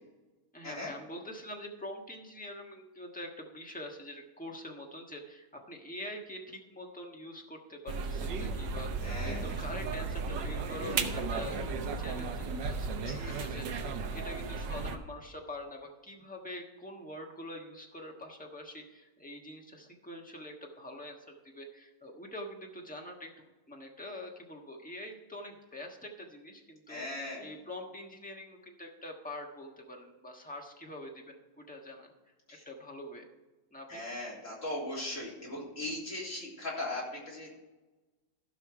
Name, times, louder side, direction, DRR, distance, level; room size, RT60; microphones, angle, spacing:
voice 1, 0.5-8.9 9.2-13.7 14.1-27.0 27.4-32.1 32.6-33.3 33.7-34.0, left 1 dB, 5° left, 0 dB, 1.1 m, -45 dB
sound 1, 7.9-15.0, right 4 dB, 75° right, 1.5 m, -35 dB
voice 2, 9.0-9.6 13.1-13.4 26.9-27.5 32.5-32.6 33.9-37.5, left 1 dB, 40° left, -5 dB, 3.7 m, -39 dB
15.5 x 5.6 x 4.8 m, 1.2 s
omnidirectional pair, 2.0 m